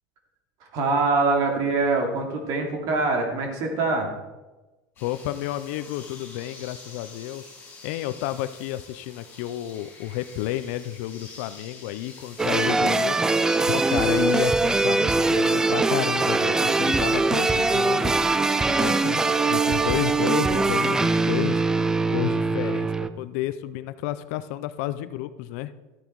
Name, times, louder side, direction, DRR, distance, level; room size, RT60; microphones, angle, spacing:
voice 1, 0.7-4.1, right 3 dB, 45° right, 2 dB, 2.7 m, -24 dB
voice 2, 5.0-7.4 7.8-13.2 13.7-18.1 18.7-21.6 22.1-25.7, left 14 dB, 60° left, 14 dB, 0.6 m, -31 dB
sound 1, 5.0-14.4, left 3 dB, 25° left, 4.5 m, -47 dB
sound 2, 12.4-23.1, right 3 dB, 5° right, 0.3 m, -22 dB
13.0 x 8.9 x 4.7 m, 1.1 s
cardioid pair, 170°, 9 cm